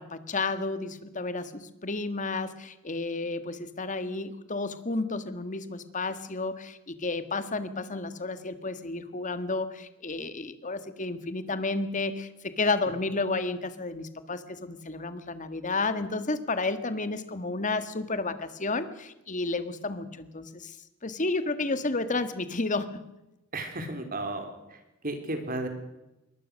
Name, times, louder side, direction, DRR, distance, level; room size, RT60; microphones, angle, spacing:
voice 1, 0.0-20.8 21.0-23.0, left 3 dB, 40° left, 12 dB, 1.7 m, -31 dB
voice 2, 23.5-25.7, right 2 dB, 45° right, 7 dB, 3.9 m, -34 dB
23.0 x 19.0 x 6.4 m, 0.95 s
head